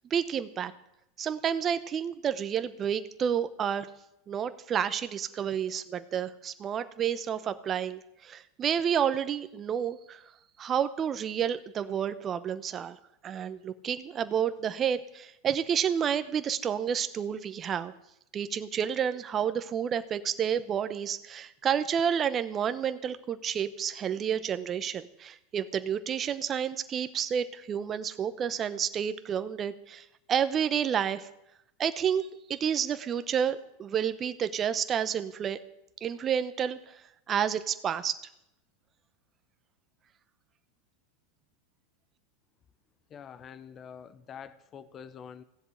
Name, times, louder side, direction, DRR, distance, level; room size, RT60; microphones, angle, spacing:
voice 1, 0.1-0.7 1.2-3.9 4.3-10.2 10.6-13.0 13.2-17.9 18.3-31.3 31.8-35.6 36.0-37.0 37.3-38.2, right 8 dB, 30° right, 12 dB, 0.9 m, -30 dB
voice 2, 43.1-45.4, left 7 dB, 35° left, 15 dB, 0.9 m, -46 dB
15.0 x 7.9 x 7.9 m, 0.84 s
hypercardioid pair, 100°, 0 cm